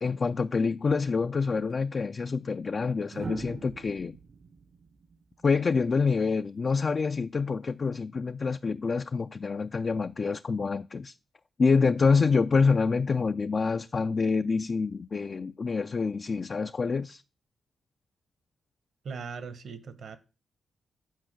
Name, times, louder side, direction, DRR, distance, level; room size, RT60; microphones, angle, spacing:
voice 1, 0.0-4.2 5.4-11.1 11.6-17.2, left 4 dB, 45° left, 0.4 m, -26 dB
sound 1, 1.5-1.7 3.1-6.1 7.7-8.0, right 5 dB, 50° right, 0.7 m, -43 dB
voice 2, 19.0-20.2, right 5 dB, 70° right, 1.1 m, -39 dB
9.3 x 4.6 x 7.5 m
cardioid pair, 65°, 0 cm